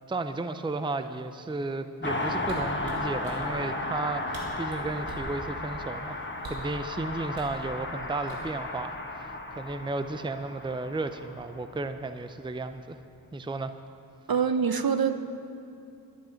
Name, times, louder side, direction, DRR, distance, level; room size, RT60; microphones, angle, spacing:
voice 1, 0.1-13.0 13.3-13.7, right 3 dB, 10° right, 10 dB, 0.5 m, -34 dB
Car passing by, 2.0-12.0 12.2-12.3, left 2 dB, 25° left, 1.3 m, -35 dB
sound 1, 2.4-3.4 4.1-4.2 4.3-5.3 6.4-6.7 7.3-7.6 8.3-8.7 9.1-9.4, right 2 dB, 90° right, 2.3 m, -43 dB
voice 2, 14.3-15.2, right 6 dB, 55° right, 9 dB, 0.8 m, -24 dB
11.5 x 11.0 x 5.8 m, 2.6 s
cardioid pair, 45°, 43 cm